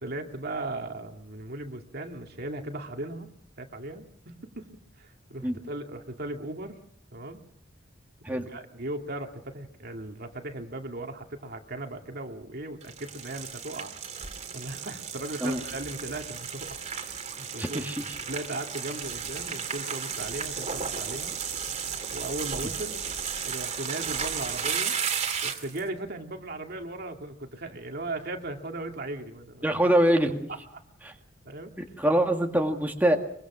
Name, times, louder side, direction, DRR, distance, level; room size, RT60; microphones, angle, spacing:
voice 1, 0.0-3.3 3.6-4.7 5.0-6.8 7.1-7.4 8.3-14.0 14.5-16.8 17.3-17.8 18.3-21.3 22.1-23.1 23.4-25.0 25.4-29.8 30.5-30.8 31.4-31.7, right 2 dB, 55° right, 4 dB, 2.3 m, -37 dB
sound 1, 12.8-25.8, right 6 dB, 35° right, 2.6 m, -34 dB
voice 2, 17.6-18.0 29.6-30.5 32.0-33.2, right 1 dB, 10° right, 2 dB, 1.9 m, -24 dB
24.0 x 23.5 x 6.2 m, 0.66 s
head